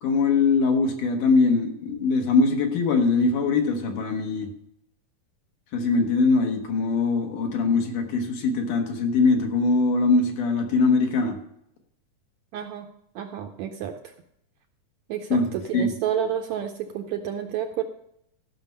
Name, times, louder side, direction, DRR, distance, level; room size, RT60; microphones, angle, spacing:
voice 1, 0.0-4.5 5.7-11.4 15.3-15.5 15.7-15.9, left 4 dB, 70° left, 3 dB, 2.9 m, -22 dB
voice 2, 12.5-12.9 13.2-14.1 15.1-17.8, right 9 dB, 75° right, 5 dB, 1.7 m, -30 dB
14.0 x 6.1 x 5.6 m, 0.73 s
omnidirectional pair, 3.8 m